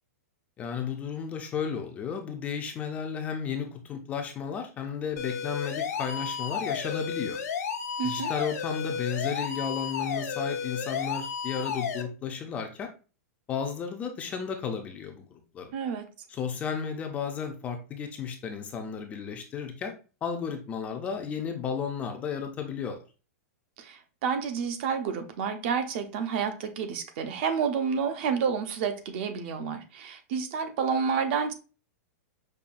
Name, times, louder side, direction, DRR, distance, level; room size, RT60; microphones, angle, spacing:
voice 1, 0.6-7.4 8.0-12.9 13.5-15.3 15.5-15.7 16.3-19.9 20.2-23.0, left 7 dB, 15° left, 0.4 m, -33 dB
sound 1, 5.2-12.0, left 6 dB, 80° left, 0.7 m, -32 dB
voice 2, 8.0-8.3 15.7-16.1 23.8-31.5, right 6 dB, 40° right, 0.5 m, -29 dB
5.4 x 2.2 x 2.5 m
supercardioid pair, 160°, 8 cm